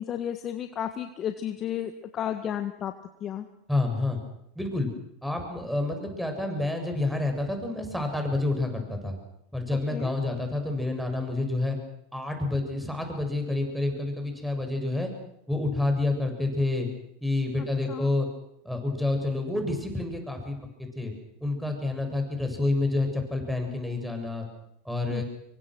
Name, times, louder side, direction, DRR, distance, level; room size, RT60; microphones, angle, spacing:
voice 1, 0.0-2.9 3.2-3.5 9.9-10.1 17.6-18.1 25.1-25.2, left 10 dB, 40° left, 8 dB, 1.8 m, -33 dB
voice 2, 3.7-4.2 4.6-4.9 5.2-9.2 9.5-11.8 12.1-15.1 15.5-16.9 17.2-18.3 18.6-21.1 21.4-24.5 24.8-25.2, left 2 dB, ahead, 4 dB, 7.3 m, -28 dB
26.0 x 23.5 x 6.4 m, 0.77 s
hypercardioid pair, 95°, 0 cm